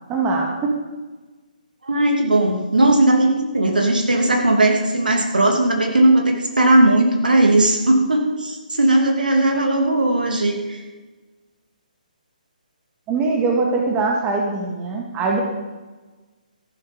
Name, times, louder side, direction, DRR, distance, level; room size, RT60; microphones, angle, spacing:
voice 1, 0.1-0.8 13.1-15.4, right 3 dB, 20° right, 1 dB, 2.1 m, -22 dB
voice 2, 1.8-10.8, right 1 dB, 75° right, 2 dB, 2.9 m, -17 dB
14.5 x 11.5 x 5.4 m, 1.2 s
figure-of-eight pair, 140°, 5 cm